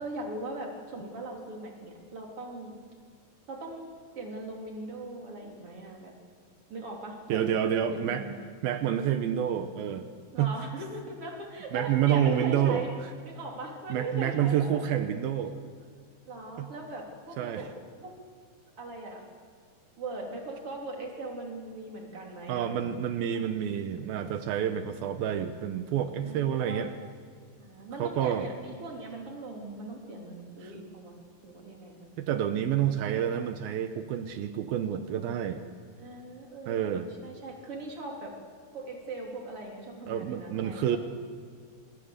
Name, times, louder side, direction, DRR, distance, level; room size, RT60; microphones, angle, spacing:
voice 1, 0.0-2.8 3.5-3.9 4.2-6.1 6.7-7.4 7.9-8.4 10.3-12.9 13.2-14.8 16.3-17.7 18.0-18.1 18.8-19.3 20.0-23.7 26.2-26.9 27.6-31.1 31.4-32.1 34.7-35.0 36.0-38.3 38.7-41.0, right 2 dB, 35° right, 0 dB, 4.1 m, -40 dB
voice 2, 7.3-8.2 8.6-10.1 10.4-10.5 11.7-12.8 13.9-15.5 16.6-16.7 17.4-17.6 22.5-26.9 28.0-28.5 32.2-35.6 36.7-37.1 40.1-41.0, right 10 dB, 80° right, 8 dB, 2.7 m, -28 dB
26.0 x 20.5 x 6.7 m, 2.1 s
omnidirectional pair, 4.4 m